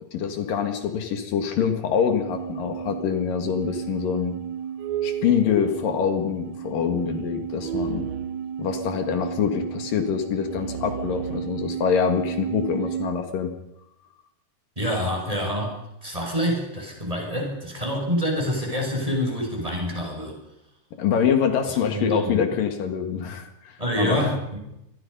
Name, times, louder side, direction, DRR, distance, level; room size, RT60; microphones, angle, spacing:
voice 1, 0.1-4.4 5.0-8.1 8.6-13.5 21.0-24.3, left 7 dB, 80° left, 6 dB, 3.6 m, -25 dB
sound 1, 2.0-13.2, right 9 dB, 70° right, 1.8 m, -32 dB
voice 2, 14.8-15.8 16.0-20.4 21.9-22.4 23.8-24.6, equal, 10° right, 0 dB, 6.4 m, -26 dB
26.0 x 20.5 x 5.5 m, 0.85 s
omnidirectional pair, 3.9 m